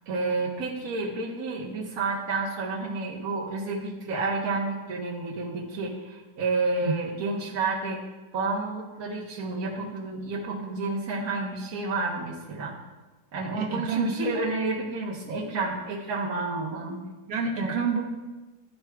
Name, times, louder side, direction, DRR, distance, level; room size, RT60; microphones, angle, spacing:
voice 1, 0.1-8.0 8.3-12.7 13.3-17.0 17.6-17.7, right 3 dB, 65° right, -4 dB, 1.3 m, -30 dB
voice 2, 13.5-14.2 17.3-18.0, right 4 dB, 80° right, 1 dB, 1.5 m, -28 dB
12.0 x 4.6 x 2.3 m, 1.2 s
omnidirectional pair, 1.7 m